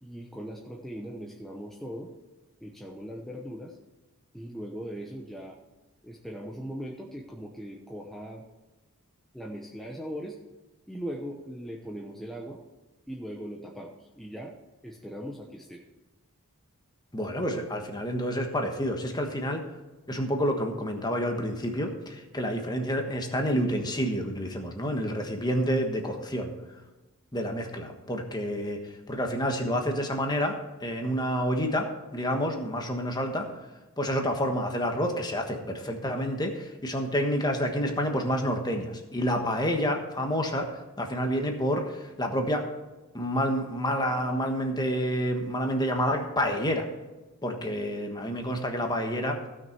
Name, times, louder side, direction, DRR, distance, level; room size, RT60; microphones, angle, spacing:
voice 1, 0.0-2.1 2.6-3.8 4.3-5.6 6.0-8.4 9.3-10.4 10.9-12.6 13.1-14.5 14.8-15.8, equal, ahead, -2 dB, 0.9 m, -39 dB
voice 2, 17.1-19.6 20.1-26.5 27.3-28.8 29.1-33.5 34.0-42.7 43.1-46.9 47.4-49.4, equal, 20° left, 3 dB, 1.3 m, -29 dB
16.0 x 6.2 x 4.5 m, 1.1 s
head